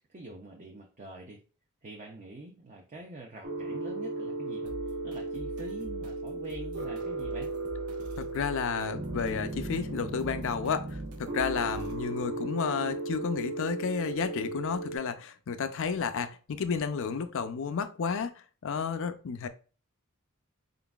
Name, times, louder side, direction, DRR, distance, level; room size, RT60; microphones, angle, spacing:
voice 1, 0.0-1.4 1.8-4.7 5.0-7.5, right 2 dB, 35° right, 0.5 m, -45 dB
sound 1, 3.4-15.0, right 2 dB, 60° right, 1.1 m, -36 dB
sound 2, 4.7-12.0, right 1 dB, 75° right, 0.8 m, -45 dB
voice 2, 8.2-19.5, left 6 dB, 60° left, 0.5 m, -32 dB
4.1 x 3.8 x 2.3 m
head